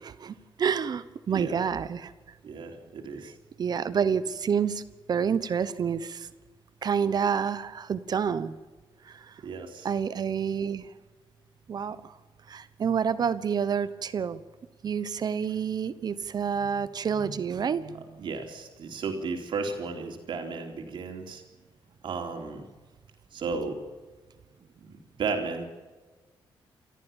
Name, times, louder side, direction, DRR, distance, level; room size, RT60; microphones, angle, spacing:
voice 1, 0.0-2.1 3.6-4.8 5.1-6.3 6.8-8.6 9.0-9.4 9.8-10.9 11.7-12.2 12.5-14.4 14.8-18.2, right 7 dB, 50° right, 14 dB, 1.1 m, -28 dB
voice 2, 2.4-3.3 9.4-9.9 18.2-21.4 22.0-22.6 23.3-23.8 24.8-25.7, right 4 dB, 65° right, 3 dB, 3.9 m, -34 dB
29.0 x 14.0 x 7.3 m, 1.3 s
cardioid pair, 125°, 9 cm